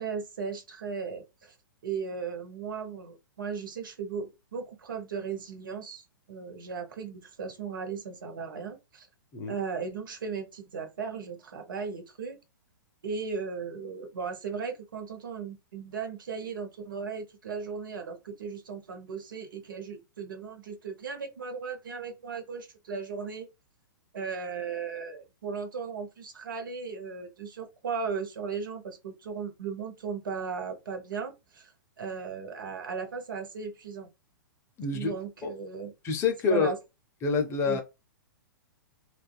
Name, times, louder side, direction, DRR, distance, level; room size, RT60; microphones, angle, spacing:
voice 1, 0.0-1.5 1.8-9.1 9.5-12.4 13.0-23.5 24.1-31.7 32.0-34.1 34.9-35.9 36.5-36.8 37.7-37.8, right 5 dB, 70° right, 0.7 m, -36 dB
voice 2, 34.8-35.1 35.4-35.5 36.0-36.7 37.2-37.8, left 5 dB, 25° left, 0.5 m, -27 dB
2.5 x 2.2 x 2.2 m
figure-of-eight pair, 110°, 11 cm